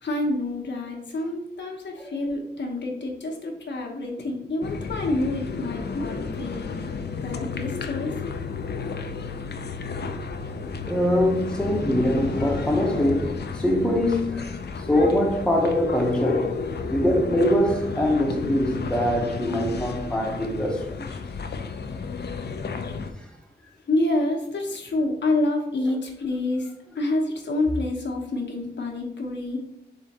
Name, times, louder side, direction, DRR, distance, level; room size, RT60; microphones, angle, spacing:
voice 1, 0.0-6.7 7.2-8.1 23.9-26.7 26.9-29.6, left 2 dB, 85° left, 0.9 m, -27 dB
sound 1, 4.6-23.1, left 5 dB, 65° left, 0.4 m, -32 dB
voice 2, 10.9-14.5 14.9-16.5 16.9-21.0, left 1 dB, 5° left, 0.8 m, -23 dB
3.7 x 3.3 x 4.1 m
wide cardioid pair, 95°, 18 cm